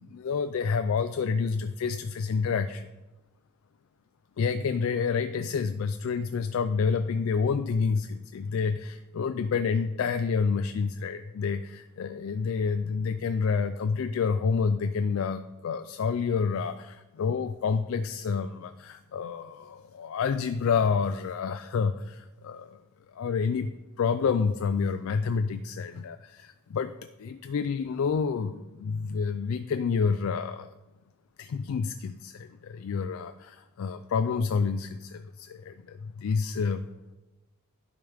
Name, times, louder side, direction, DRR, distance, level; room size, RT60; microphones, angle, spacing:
voice 1, 0.0-2.9 4.4-22.8 23.1-30.7 31.4-36.9, left 5 dB, 65° left, 9 dB, 0.3 m, -29 dB
11.0 x 5.0 x 3.4 m, 1.1 s
head